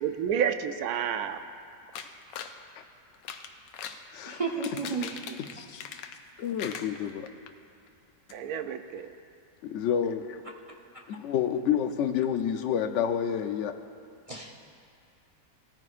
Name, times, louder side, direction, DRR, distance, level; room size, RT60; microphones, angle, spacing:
voice 1, 0.0-1.4 8.3-9.1, right 8 dB, 70° right, 9 dB, 1.0 m, -30 dB
sound 1, 1.9-2.6 3.1-4.0 4.5-6.3 6.6-7.5 7.9-8.0 8.3-8.4, left 7 dB, 85° left, 1.3 m, -41 dB
voice 2, 4.3-5.1 14.3-14.6, right 5 dB, 35° right, -1 dB, 0.6 m, -32 dB
voice 3, 5.4-5.8 6.4-7.3 9.6-10.4 11.1-13.8, left 8 dB, 65° left, 8 dB, 0.7 m, -29 dB
19.5 x 14.0 x 2.5 m, 2.4 s
omnidirectional pair, 1.9 m